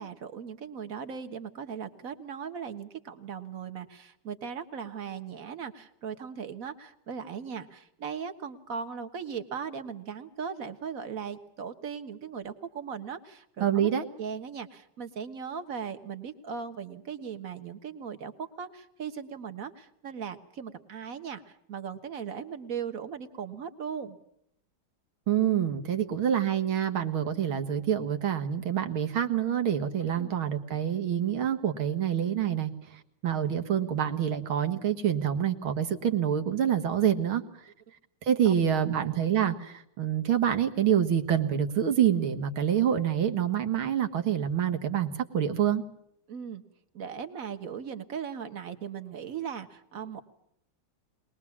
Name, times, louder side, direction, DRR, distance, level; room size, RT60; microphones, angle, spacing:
voice 1, 0.0-24.2 30.1-30.3 38.5-39.1 46.3-46.6 46.9-50.2, right 7 dB, 45° right, 9 dB, 1.7 m, -38 dB
voice 2, 13.6-14.1 25.3-32.7 33.2-37.4 38.2-45.8, right 9 dB, 75° right, 8 dB, 2.4 m, -26 dB
22.0 x 20.5 x 7.2 m, 0.75 s
omnidirectional pair, 2.3 m